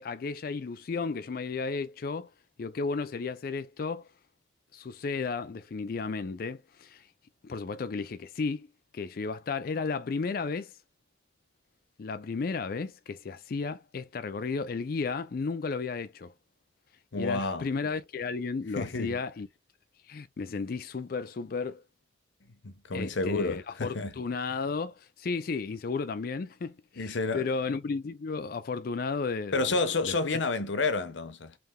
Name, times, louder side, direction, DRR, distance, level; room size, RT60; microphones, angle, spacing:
voice 1, 0.0-2.3 2.6-4.1 4.7-7.1 7.4-8.7 8.9-10.7 12.0-16.3 17.2-19.5 20.1-21.8 22.9-24.9 25.2-30.4, left 4 dB, 50° left, 0.4 m, -33 dB
voice 2, 17.1-17.7 18.8-19.2 22.6-24.1 27.0-27.5 29.5-31.6, left 3 dB, 80° left, 0.7 m, -30 dB
3.4 x 2.7 x 3.5 m
head